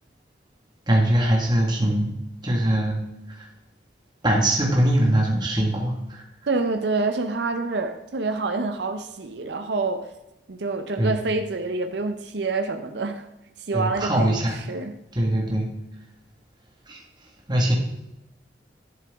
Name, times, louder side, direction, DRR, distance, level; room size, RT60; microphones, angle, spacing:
voice 1, 0.9-2.2 2.4-3.0 3.3-3.4 4.2-6.2 11.0-11.2 13.7-14.6 15.2-15.7 16.9-17.0 17.5-17.7, right 1 dB, 25° right, -1 dB, 1.6 m, -22 dB
voice 2, 6.5-10.1 10.5-13.2 13.7-14.9, right 3 dB, 75° right, 7 dB, 0.7 m, -27 dB
11.0 x 7.5 x 3.5 m, 0.92 s
head